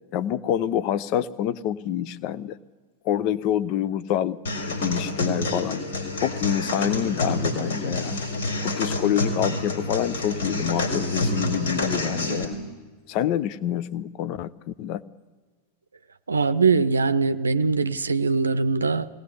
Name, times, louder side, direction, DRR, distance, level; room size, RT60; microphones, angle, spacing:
voice 1, 0.1-2.6 3.0-5.8 6.2-8.2 8.6-12.7 13.1-15.0, left 10 dB, 40° left, 16 dB, 0.7 m, -27 dB
sound 1, 4.5-12.4, left 1 dB, 65° left, 4.0 m, -28 dB
voice 2, 16.3-19.1, right 4 dB, 75° right, 13 dB, 0.6 m, -22 dB
22.5 x 18.0 x 8.5 m, 1.3 s
figure-of-eight pair, 90°, 0 cm